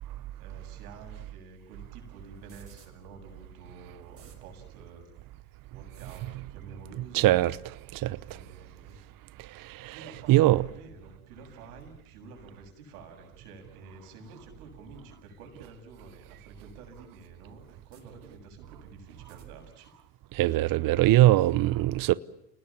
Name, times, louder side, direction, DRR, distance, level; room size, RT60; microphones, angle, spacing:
voice 1, 0.4-5.1 5.7-7.4 8.2-8.9 9.9-19.9, right 3 dB, 80° right, 7.7 m, -50 dB
sound 1, 2.3-2.9 3.7-3.8 4.0-4.4 5.9-6.4 7.2-7.4 8.9-9.1 10.3-10.5 11.8-11.9 13.2-13.3 14.7-14.8 16.2-16.3 16.6-16.7 17.7-18.0 19.1-19.5, right 5 dB, 30° right, 6.6 m, -58 dB
voice 2, 7.1-7.6 7.9-8.2 9.7-10.6 20.3-22.1, right 16 dB, 50° right, 0.9 m, -22 dB
30.0 x 19.5 x 7.2 m
hypercardioid pair, 85°, 44 cm